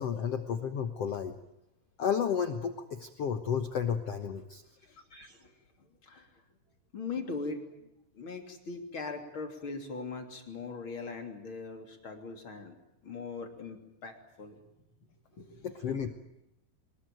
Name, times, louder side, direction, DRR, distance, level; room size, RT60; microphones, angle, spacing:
voice 1, 0.0-1.3 2.0-4.6 5.1-5.4 15.6-16.1, left 7 dB, 65° left, 8 dB, 1.5 m, -32 dB
voice 2, 6.9-7.9 8.2-12.7 13.0-14.6 15.4-16.1, left 4 dB, 35° left, 5 dB, 3.6 m, -40 dB
24.5 x 21.0 x 9.2 m, 0.87 s
omnidirectional pair, 4.6 m